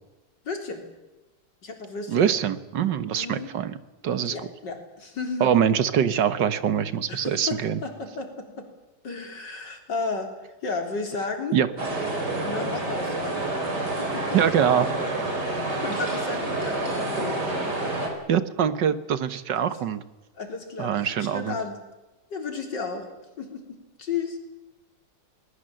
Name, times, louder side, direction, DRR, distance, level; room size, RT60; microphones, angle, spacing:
voice 1, 0.4-0.8 1.6-2.2 3.1-3.5 4.3-5.5 7.1-8.7 9.0-10.3 10.6-11.6 12.4-13.6 14.0-14.3 15.4-17.4 20.3-21.8 22.3-23.0 23.4-24.4, left 4 dB, 85° left, 4 dB, 4.2 m, -33 dB
voice 2, 2.1-3.8 4.0-4.4 5.4-7.8 11.5-11.7 14.3-14.9 18.3-20.0 20.8-21.6, right 8 dB, 85° right, 13 dB, 1.9 m, -23 dB
sound 1, 11.8-18.1, right 2 dB, 70° right, 4.8 m, -28 dB
21.5 x 20.0 x 7.7 m, 1.1 s
omnidirectional pair, 1.9 m